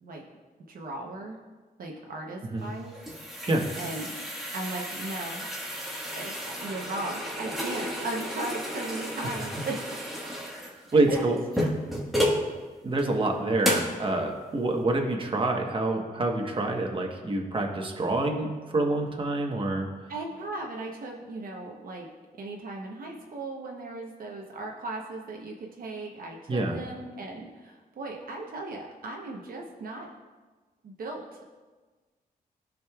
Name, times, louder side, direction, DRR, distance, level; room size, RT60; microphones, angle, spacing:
voice 1, 0.7-1.4 1.8-2.9 3.8-4.2 4.5-5.5 6.2-10.2 10.9-11.7 20.1-22.1 22.3-30.1 30.8-31.6, right 2 dB, 70° right, 0 dB, 0.9 m, -37 dB
sound 1, 2.6-12.5 13.0-13.1 13.6-14.0, equal, ahead, 1.4 m, -32 dB
voice 2, 10.9-11.4 12.8-19.9 26.5-26.8, right 2 dB, 35° right, 1 dB, 1.2 m, -27 dB
15.0 x 5.2 x 2.4 m, 1.3 s
cardioid pair, 90°, 16 cm